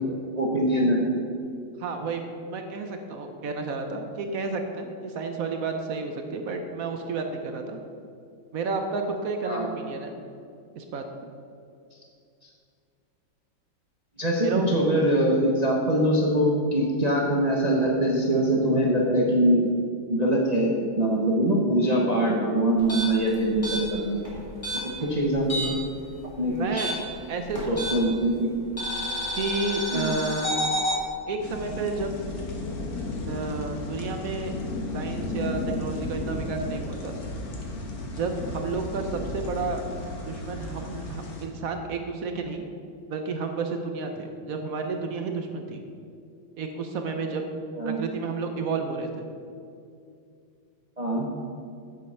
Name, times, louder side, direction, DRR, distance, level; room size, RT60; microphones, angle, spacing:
voice 1, 0.4-1.0 9.4-9.7 14.2-19.6 20.1-24.2 25.0-25.7 26.4-26.9 27.7-28.5 29.9-30.1 47.8-48.0 51.0-51.3, right 1 dB, 40° right, -2 dB, 0.5 m, -23 dB
voice 2, 1.8-2.2 2.5-7.8 8.5-10.2 10.8-11.0 14.4-14.7 26.5-26.9 27.3-28.1 29.3-30.5 31.3-32.2 33.3-34.5 34.9-37.2 38.1-39.8 40.3-42.7 43.1-45.8 46.6-47.4 47.8-49.3, right 4 dB, 65° right, 5 dB, 0.9 m, -31 dB
sound 1, 22.8-25.9 26.2-28.2 28.8-31.0, equal, 15° left, 2.3 m, -30 dB
sound 2, 31.4-41.5, left 2 dB, 50° left, 1.6 m, -34 dB
7.7 x 7.4 x 5.6 m, 2.4 s
omnidirectional pair, 2.2 m